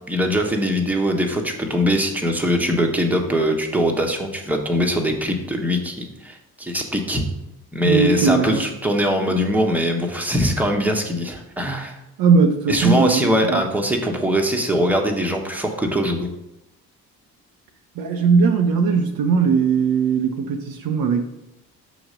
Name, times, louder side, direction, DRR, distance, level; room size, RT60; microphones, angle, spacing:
voice 1, 0.1-7.2 7.7-12.0 12.7-16.3, equal, 5° right, 2 dB, 1.2 m, -22 dB
voice 2, 7.8-8.6 12.2-13.7 18.0-21.2, right 5 dB, 55° right, 5 dB, 0.8 m, -19 dB
6.2 x 3.0 x 5.1 m, 0.87 s
hypercardioid pair, 45°, 43 cm